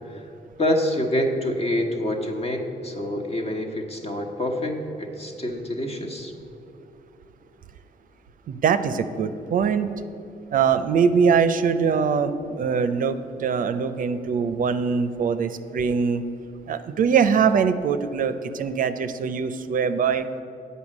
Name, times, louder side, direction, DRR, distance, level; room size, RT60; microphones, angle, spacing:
voice 1, 0.6-6.3, left 1 dB, 40° left, 3 dB, 1.3 m, -26 dB
voice 2, 8.5-9.9 10.5-16.2 16.7-20.3, right 6 dB, 60° right, 11 dB, 0.5 m, -22 dB
8.0 x 5.5 x 7.4 m, 2.7 s
supercardioid pair, 70°, 16 cm